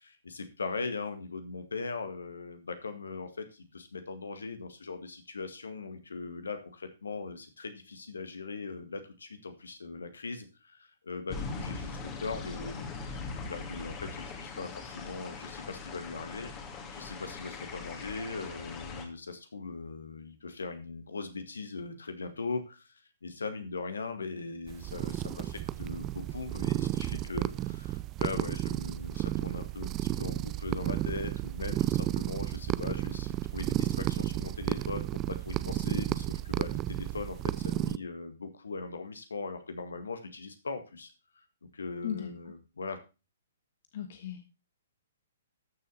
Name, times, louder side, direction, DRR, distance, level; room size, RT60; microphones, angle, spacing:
voice 1, 0.0-16.5 16.9-43.0, left 4 dB, 70° left, 9 dB, 1.9 m, -40 dB
sound 1, 11.3-19.0, left 4 dB, 25° left, 2.4 m, -41 dB
sound 2, 24.7-38.0, right 14 dB, 25° right, 0.4 m, -32 dB
voice 2, 43.9-44.4, left 9 dB, 50° left, 7 dB, 1.4 m, -36 dB
13.5 x 6.8 x 4.0 m, 0.30 s
figure-of-eight pair, 120°, 0 cm